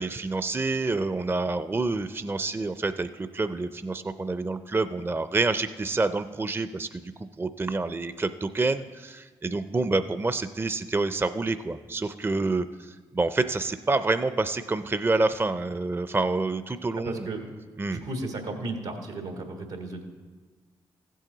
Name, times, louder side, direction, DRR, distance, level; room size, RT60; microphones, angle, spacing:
voice 1, 0.0-7.0 7.4-17.3 17.8-18.0, right 3 dB, 20° right, 11 dB, 0.5 m, -28 dB
voice 2, 17.0-17.4 17.8-20.0, right 2 dB, 85° right, 3 dB, 1.5 m, -34 dB
15.0 x 7.5 x 3.9 m, 1.4 s
supercardioid pair, 45°, 11 cm